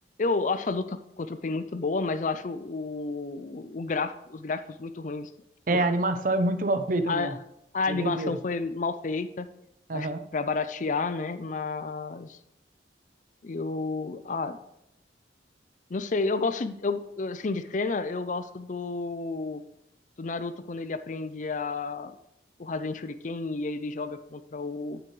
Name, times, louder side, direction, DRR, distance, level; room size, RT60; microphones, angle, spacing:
voice 1, 0.2-5.3 5.7-5.9 7.1-7.4 7.7-9.5 9.9-12.4 13.4-14.6 15.9-19.6 20.2-22.2 22.6-25.0, left 3 dB, 45° left, 12 dB, 0.5 m, -31 dB
voice 2, 5.7-7.3 7.9-8.4 9.9-10.2, right 2 dB, 50° right, 10 dB, 0.7 m, -26 dB
9.6 x 9.2 x 3.3 m, 0.81 s
head